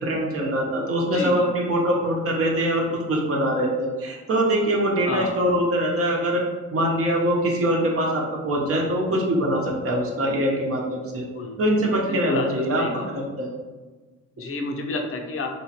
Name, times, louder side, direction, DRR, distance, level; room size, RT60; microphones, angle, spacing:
voice 1, 0.0-6.4 6.7-11.2 11.6-13.5, right 1 dB, 50° right, -2 dB, 0.9 m, -23 dB
voice 2, 1.1-1.5 5.1-5.3 11.2-11.6 12.1-12.5 12.8-13.1 14.4-15.5, left 3 dB, 45° left, 3 dB, 0.6 m, -30 dB
3.1 x 3.0 x 2.9 m, 1.3 s
cardioid pair, 90°, 30 cm